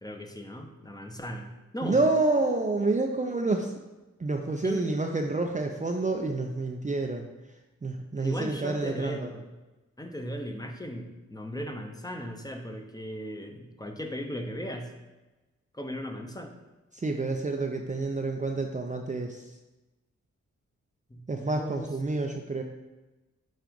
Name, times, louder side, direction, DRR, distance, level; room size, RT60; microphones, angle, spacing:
voice 1, 0.0-2.0 4.6-4.9 8.1-9.5 10.0-14.9 15.7-16.5 21.1-21.9, equal, 15° left, 3 dB, 0.8 m, -37 dB
voice 2, 1.8-3.7 4.2-7.3 7.8-9.3 16.9-19.5 21.3-22.6, right 3 dB, 25° right, 3 dB, 0.5 m, -28 dB
7.4 x 2.5 x 5.2 m, 1.1 s
cardioid pair, 70°, 30 cm